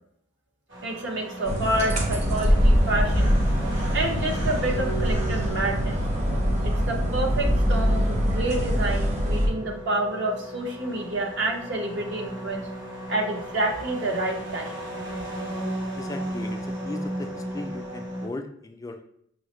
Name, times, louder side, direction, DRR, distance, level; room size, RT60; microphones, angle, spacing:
sound 1, 0.7-18.3, right 1 dB, 90° right, 1.1 m, -36 dB
voice 1, 0.8-3.3 3.9-6.0 6.6-12.6 13.1-14.8, right 1 dB, 70° right, 0 dB, 0.9 m, -28 dB
sound 2, 1.4-9.5, equal, 40° right, 0.8 m, -23 dB
voice 2, 16.0-19.0, left 2 dB, 20° left, 5 dB, 0.3 m, -37 dB
6.2 x 2.1 x 3.0 m, 0.70 s
head